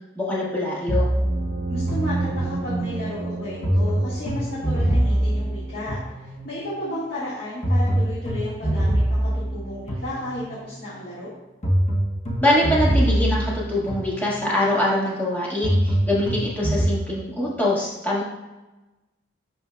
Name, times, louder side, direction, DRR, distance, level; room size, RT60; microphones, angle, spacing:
voice 1, 0.1-1.1 12.4-18.2, left 1 dB, 10° left, -6 dB, 1.7 m, -23 dB
sound 1, 0.9-2.8 3.6-6.7 7.6-10.7 11.6-14.7 15.6-17.0, right 1 dB, 40° left, 1.0 m, -24 dB
sound 2, 1.2-5.7, right 2 dB, 85° right, 1.0 m, -30 dB
voice 2, 1.7-11.3, left 1 dB, 60° left, -9 dB, 1.8 m, -33 dB
11.0 x 4.2 x 2.2 m, 1.1 s
head